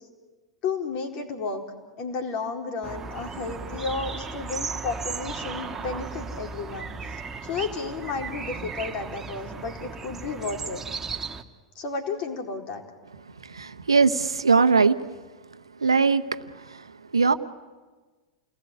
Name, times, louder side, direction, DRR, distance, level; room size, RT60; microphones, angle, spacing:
voice 1, 0.6-1.6 2.0-10.8 11.8-12.8, left 4 dB, 40° left, 4 dB, 4.1 m, -32 dB
sound 1, 2.8-11.4, right 5 dB, 15° right, 1.7 m, -36 dB
voice 2, 13.5-14.9 15.8-16.2 17.1-17.3, right 4 dB, 80° right, 11 dB, 1.0 m, -20 dB
29.0 x 19.5 x 9.8 m, 1.3 s
figure-of-eight pair, 90°, 3 cm